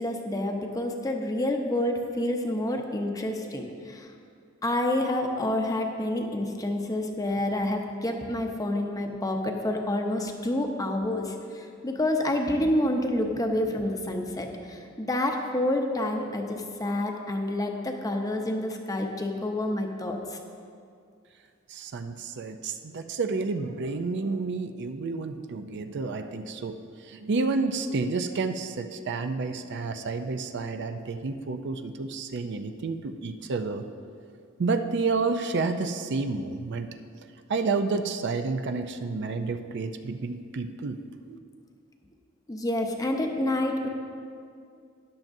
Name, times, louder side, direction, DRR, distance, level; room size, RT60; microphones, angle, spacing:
voice 1, 0.0-4.1 4.6-20.4 42.5-43.9, left 1 dB, 15° left, 3 dB, 0.7 m, -28 dB
voice 2, 21.7-33.8 34.6-36.9 37.5-41.0 41.2-41.4, right 4 dB, 55° right, 8 dB, 0.5 m, -30 dB
13.0 x 10.5 x 2.7 m, 2.3 s
head